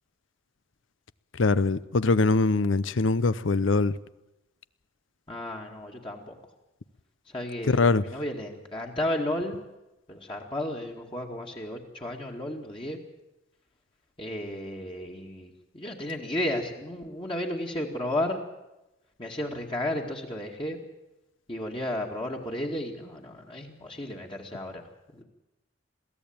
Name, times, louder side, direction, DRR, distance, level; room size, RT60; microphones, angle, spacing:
voice 1, 1.3-4.0 7.6-8.0, left 3 dB, 85° left, 0.8 m, -23 dB
voice 2, 5.3-6.4 7.3-9.6 10.1-13.0 14.2-18.4 19.2-20.8 21.5-24.8 25.1-25.2, left 1 dB, 25° left, 2.2 m, -33 dB
22.5 x 15.5 x 8.8 m
head